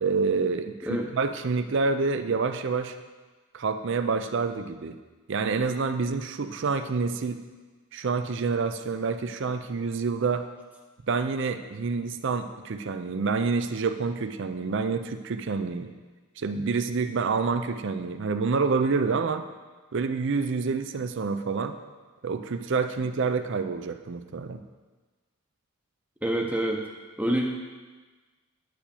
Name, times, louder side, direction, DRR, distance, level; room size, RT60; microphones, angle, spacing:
voice 1, 0.0-3.0 3.5-5.0 5.3-7.4 7.9-10.5 11.1-15.9 16.4-19.5 19.9-21.8 22.2-24.6, right 4 dB, 60° right, 9 dB, 0.5 m, -27 dB
voice 2, 26.2-26.9 27.2-27.6, right 1 dB, 5° right, 0 dB, 0.7 m, -27 dB
10.0 x 5.1 x 6.9 m, 1.3 s
head